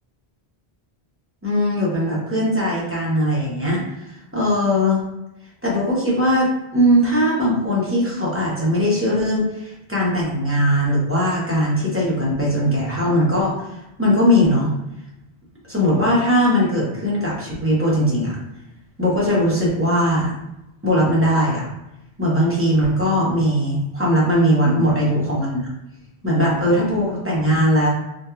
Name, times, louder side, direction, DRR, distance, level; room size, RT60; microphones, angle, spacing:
voice 1, 1.4-5.0 5.6-14.7 15.7-18.4 19.0-20.3 20.8-21.7 22.2-25.6 26.2-27.9, equal, 15° right, -7 dB, 0.6 m, -19 dB
2.8 x 2.2 x 2.3 m, 0.91 s
omnidirectional pair, 1.1 m